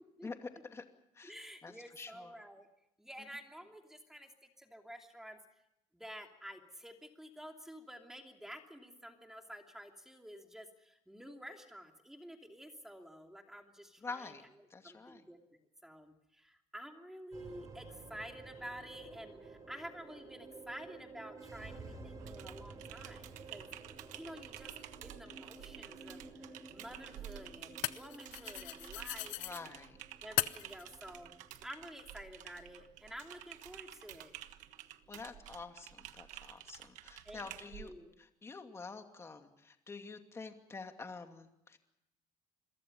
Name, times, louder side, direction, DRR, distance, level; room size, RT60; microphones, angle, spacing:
voice 1, 0.2-0.8 1.1-1.3 1.6-2.3 3.2-3.3 14.0-14.4 14.7-15.2 29.4-30.0 35.1-37.9 38.2-41.8, left 4 dB, 20° left, 5 dB, 2.6 m, -47 dB
voice 2, 1.2-2.7 3.0-4.3 4.6-5.4 5.9-14.4 14.8-23.7 24.1-24.7 25.0-29.7 30.2-34.4 37.2-38.1, equal, 5° right, 3 dB, 2.9 m, -50 dB
sound 1, 17.3-35.8, right 3 dB, 25° right, 5.9 m, -53 dB
Typing, 22.2-37.9, right 13 dB, 80° right, 1.4 m, -51 dB
sound 2, 24.8-24.9 26.5-29.6 30.4-30.8, left 18 dB, 90° left, 0.7 m, -39 dB
28.5 x 22.5 x 5.5 m, 0.85 s
cardioid pair, 140°, 12 cm